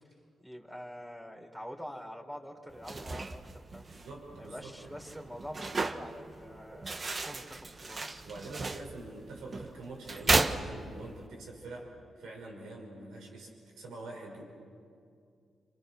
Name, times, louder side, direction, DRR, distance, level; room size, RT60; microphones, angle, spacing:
voice 1, 0.4-3.9 4.4-8.3, equal, 10° right, 1 dB, 3.9 m, -46 dB
sound 1, 2.7-11.3, right 3 dB, 40° right, 1.4 m, -35 dB
voice 2, 3.8-5.0 8.2-14.5, right 2 dB, 85° right, -1 dB, 5.9 m, -45 dB
28.5 x 26.5 x 6.5 m, 2.4 s
cardioid pair, 60°, 0 cm